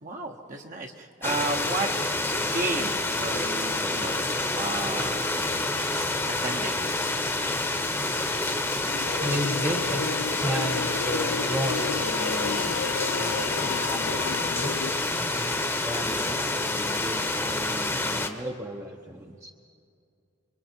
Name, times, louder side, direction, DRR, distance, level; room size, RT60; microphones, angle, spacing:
voice 1, 0.0-1.9 2.5-4.2 4.5-5.4 6.0-6.1 6.4-6.8 15.3-15.7 16.0-16.4, right 3 dB, 40° right, 1 dB, 1.0 m, -33 dB
sound 1, 1.2-18.3, left 2 dB, 10° left, 1.1 m, -28 dB
sound 2, 8.9-14.9, left 6 dB, 90° left, 0.4 m, -33 dB
voice 2, 9.2-10.1 10.4-12.8 13.1-14.8 15.8-19.5, right 1 dB, 15° right, 1 dB, 0.8 m, -34 dB
26.5 x 23.0 x 4.5 m, 2.3 s
head